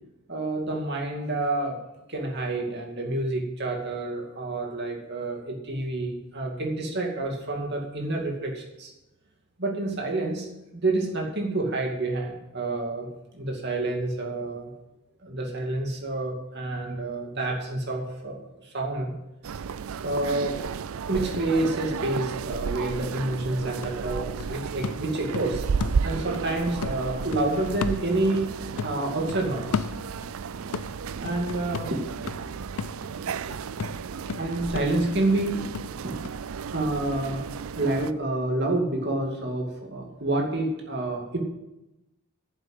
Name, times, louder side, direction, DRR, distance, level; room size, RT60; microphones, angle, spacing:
voice 1, 0.3-1.8 2.1-8.9 9.6-10.5 10.7-13.1 13.3-14.7 15.2-19.1 20.0-20.5 21.1-25.7 26.0-28.5 28.8-29.9 31.2-32.5 33.4-33.9 34.4-35.6 36.0-36.2 36.7-37.4 37.7-41.4, right 2 dB, 50° right, 1 dB, 2.5 m, -28 dB
sound 1, 19.4-38.1, right 6 dB, 70° right, 0.4 m, -33 dB
sound 2, 22.9-23.0 23.3-26.5 26.8-28.5 28.8-30.4 30.7-36.4 36.7-36.8, left 6 dB, 70° left, 0.4 m, -35 dB
10.0 x 7.9 x 8.0 m, 0.95 s
head